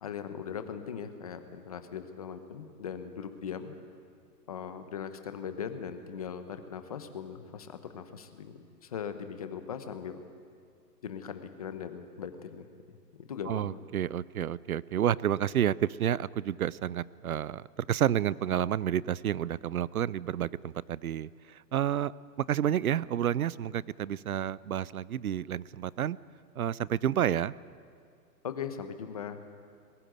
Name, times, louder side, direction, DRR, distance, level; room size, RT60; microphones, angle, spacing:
voice 1, 0.0-3.8 4.5-8.5 8.8-10.2 11.0-13.0 13.3-13.8 28.4-29.4, left 7 dB, 25° left, 9 dB, 0.9 m, -39 dB
voice 2, 13.5-21.3 21.7-22.1 22.5-26.2 26.6-27.5, right 10 dB, 60° right, 21 dB, 0.6 m, -30 dB
21.0 x 15.0 x 9.2 m, 2.2 s
hypercardioid pair, 170°, 49 cm